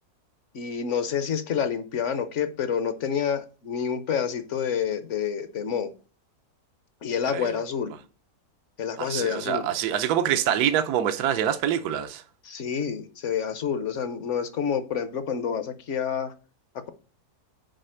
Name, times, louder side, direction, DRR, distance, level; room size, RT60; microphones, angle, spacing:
voice 1, 0.5-5.9 7.0-7.9 8.8-9.7 12.4-16.3, left 7 dB, 55° left, 1.0 m, -28 dB
voice 2, 9.0-12.2, right 10 dB, 80° right, 1.2 m, -25 dB
6.6 x 4.9 x 6.3 m
omnidirectional pair, 1.6 m